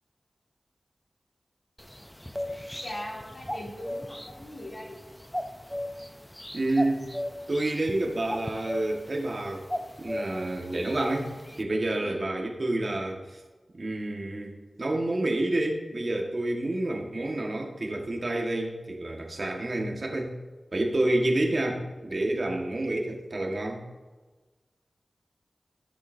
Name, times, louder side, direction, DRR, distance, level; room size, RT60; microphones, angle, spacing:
sound 1, 1.8-11.6, left 1 dB, 10° left, 0.5 m, -38 dB
voice 1, 2.8-5.0 12.0-12.2, left 1 dB, 55° left, -3 dB, 2.8 m, -40 dB
voice 2, 6.5-7.1 7.5-9.6 10.0-11.3 11.6-13.4 13.7-20.3 20.7-23.8, right 1 dB, 50° right, 1 dB, 1.5 m, -29 dB
13.5 x 6.8 x 2.7 m, 1.3 s
wide cardioid pair, 75°, 0 cm